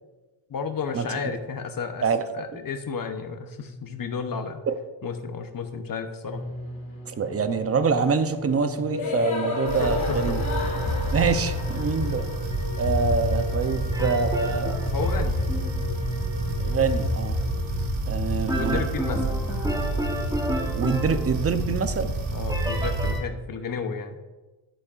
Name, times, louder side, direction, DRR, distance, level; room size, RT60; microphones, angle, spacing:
voice 1, 0.5-2.1 2.3-4.6 5.0-6.4 9.8-10.4 14.9-15.4 18.5-19.3 22.3-24.2, left 5 dB, 45° left, 7 dB, 0.9 m, -32 dB
sound 1, 6.3-21.0, left 4 dB, 75° left, 2.7 m, -32 dB
voice 2, 7.1-10.4 11.1-12.3 12.8-14.9 16.6-17.4 18.1-18.8 20.7-22.1, right 5 dB, 30° right, 9 dB, 0.7 m, -25 dB
sound 2, 9.7-23.2, right 2 dB, 75° right, 1.6 m, -29 dB
sound 3, 13.9-15.8 18.5-21.8 22.5-23.2, equal, 5° right, 1.1 m, -32 dB
11.5 x 8.3 x 2.5 m, 1.2 s
cardioid pair, 110°, 49 cm